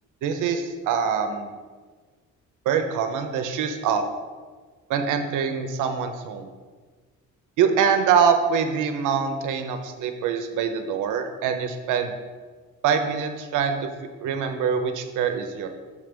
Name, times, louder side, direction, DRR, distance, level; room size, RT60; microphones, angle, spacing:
voice 1, 0.2-1.5 2.7-4.0 4.9-6.5 7.6-12.1 12.8-13.9 14.2-15.7, right 7 dB, 90° right, 7 dB, 0.7 m, -24 dB
6.7 x 3.3 x 5.1 m, 1.4 s
cardioid pair, 90°, 30 cm